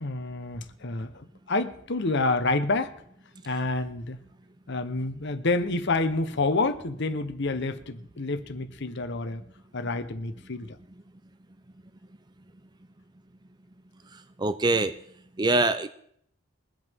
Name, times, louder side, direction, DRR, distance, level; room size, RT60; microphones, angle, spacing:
voice 1, 0.0-2.9 3.4-4.2 4.7-9.4 9.7-10.8, left 2 dB, 55° left, 10 dB, 1.0 m, -28 dB
voice 2, 14.4-14.9 15.4-15.9, right 2 dB, 20° right, 10 dB, 0.5 m, -23 dB
22.5 x 8.2 x 3.6 m, 0.68 s
head